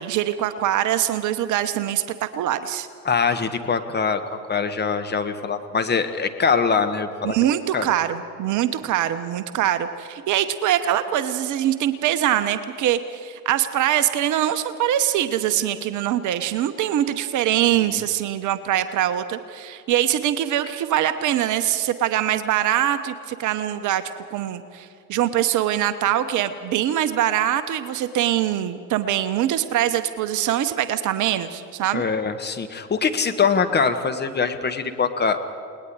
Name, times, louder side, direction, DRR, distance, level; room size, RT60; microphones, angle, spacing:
voice 1, 0.0-2.9 7.2-24.0 24.3-32.0, right 11 dB, 40° right, 11 dB, 1.0 m, -23 dB
voice 2, 3.0-7.3 7.7-7.9 31.9-35.4, left 5 dB, 20° left, 8 dB, 1.4 m, -23 dB
29.5 x 19.5 x 4.9 m, 2.4 s
figure-of-eight pair, 70°, 48 cm